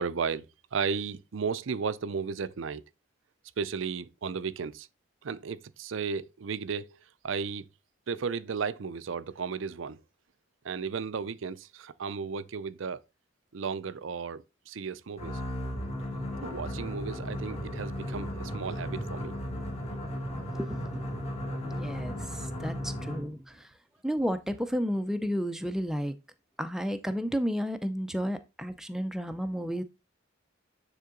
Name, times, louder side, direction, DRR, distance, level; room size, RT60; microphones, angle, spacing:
voice 1, 0.0-2.8 3.6-4.9 5.2-7.0 7.2-7.6 8.1-10.0 10.6-13.0 13.5-15.4 16.4-19.3 22.1-22.2, right 5 dB, 70° right, 0.5 m, -34 dB
sound 1, 15.2-23.4, equal, 30° left, 1.6 m, -35 dB
voice 2, 20.5-21.0 21.6-23.7 24.0-26.1 26.6-29.8, equal, ahead, 0.5 m, -32 dB
9.5 x 3.7 x 3.8 m
head